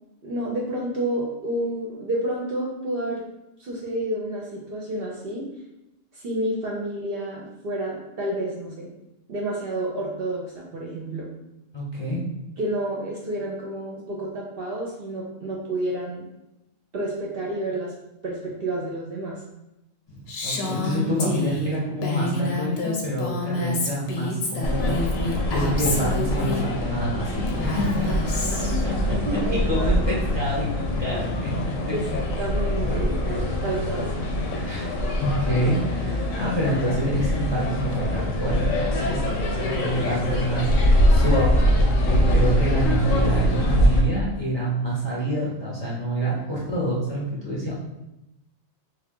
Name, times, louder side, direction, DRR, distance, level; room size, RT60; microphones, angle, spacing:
voice 1, 0.2-3.2 3.6-5.4 6.1-8.9 9.3-11.3 12.6-16.2 16.9-17.9 18.2-19.4 28.0-28.8 29.3-30.0 31.9-32.1 32.4-34.3 39.3-39.8, right 1 dB, 55° right, -3 dB, 0.7 m, -30 dB
voice 2, 11.7-12.2 20.1-25.1 25.5-31.7 34.6-34.8 35.2-39.2 39.6-47.8, right 1 dB, 25° left, -6 dB, 0.6 m, -27 dB
Female speech woman speaking, 20.3-26.6 27.5-28.8, left 2 dB, 60° left, 0.8 m, -28 dB
sound 1, 24.6-44.0, left 1 dB, 80° left, 1.0 m, -23 dB
3.4 x 2.3 x 3.6 m, 0.91 s
omnidirectional pair, 1.4 m